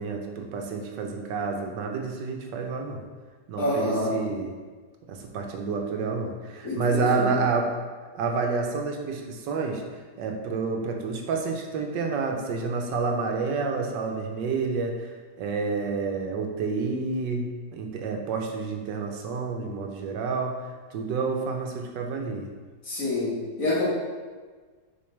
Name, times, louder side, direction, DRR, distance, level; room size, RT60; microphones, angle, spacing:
voice 1, 0.0-3.0 3.5-4.5 5.1-7.7 8.1-9.8 10.2-20.6 20.9-22.5, right 4 dB, 90° right, 2 dB, 1.4 m, -29 dB
voice 2, 3.6-4.1 6.6-7.3 22.8-23.8, left 2 dB, 50° left, -7 dB, 2.1 m, -27 dB
6.9 x 4.7 x 3.3 m, 1.4 s
omnidirectional pair, 1.9 m